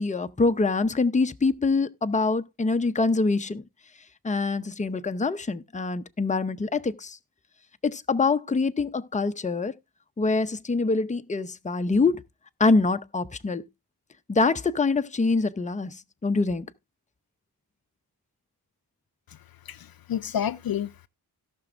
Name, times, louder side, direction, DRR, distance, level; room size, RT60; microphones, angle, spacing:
voice 1, 0.0-3.6 4.2-7.2 7.8-9.7 10.2-12.2 12.6-13.6 14.3-16.0 16.2-16.7, left 3 dB, 20° left, 0.6 m, -25 dB
voice 2, 19.7-21.1, left 9 dB, 65° left, 0.5 m, -30 dB
17.0 x 6.1 x 2.5 m
cardioid pair, 65°, 40 cm